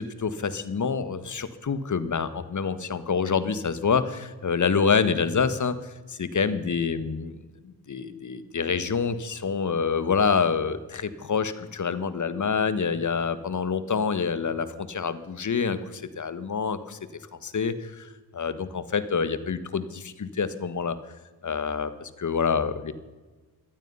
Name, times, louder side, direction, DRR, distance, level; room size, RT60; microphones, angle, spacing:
voice 1, 0.0-7.3 7.6-17.0 17.4-21.0 21.4-22.9, left 5 dB, 40° left, 13 dB, 1.5 m, -27 dB
18.0 x 12.0 x 5.7 m, 1.3 s
cardioid pair, 65°, 44 cm